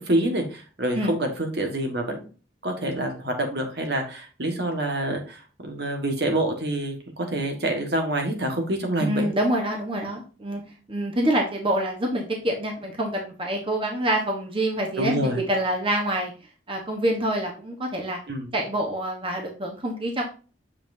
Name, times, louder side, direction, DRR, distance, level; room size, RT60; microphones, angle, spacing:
voice 1, 0.0-2.3 2.6-9.3 15.0-15.4 18.3-18.5, right 1 dB, 65° right, 3 dB, 1.6 m, -27 dB
voice 2, 9.0-10.6 10.9-16.3 16.7-18.2 18.5-20.2, right 1 dB, 30° right, 1 dB, 1.2 m, -26 dB
7.4 x 5.9 x 2.7 m, 0.35 s
head